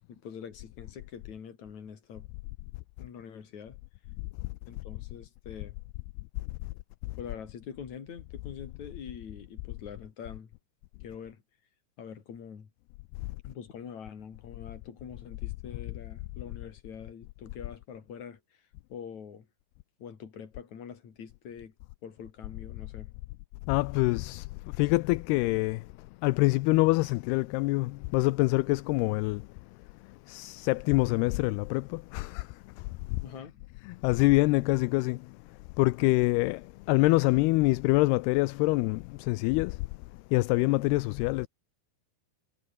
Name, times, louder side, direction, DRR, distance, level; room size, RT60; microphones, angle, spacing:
voice 1, 0.1-2.3 3.0-3.8 4.7-5.8 7.2-10.5 11.0-11.4 12.0-12.7 13.4-19.5 20.0-21.7 22.0-23.1 33.2-33.6, left 7 dB, 45° left, 4.2 m, -44 dB
voice 2, 23.7-24.5 24.8-25.8 26.2-29.4 30.3-32.4 34.0-35.2 35.8-36.6 36.9-39.7 40.3-41.5, left 22 dB, 80° left, 2.5 m, -25 dB
omnidirectional pair, 4.7 m